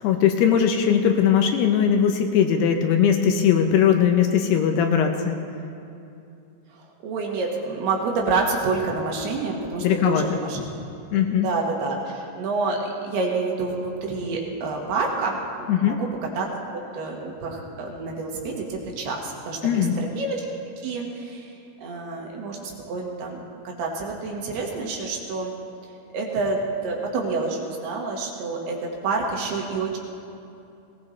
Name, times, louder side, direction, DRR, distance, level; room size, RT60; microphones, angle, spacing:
voice 1, 0.0-5.4 9.8-10.4 11.1-11.5 15.7-16.0 19.6-19.9, left 8 dB, 80° left, 5 dB, 2.6 m, -20 dB
voice 2, 7.0-10.6 11.1-16.1 16.4-16.5 16.9-20.4 20.8-21.5 21.8-25.5 26.1-28.8 29.0-30.0, right 3 dB, 70° right, -1 dB, 3.3 m, -28 dB
19.5 x 18.0 x 3.2 m, 2.6 s
omnidirectional pair, 5.1 m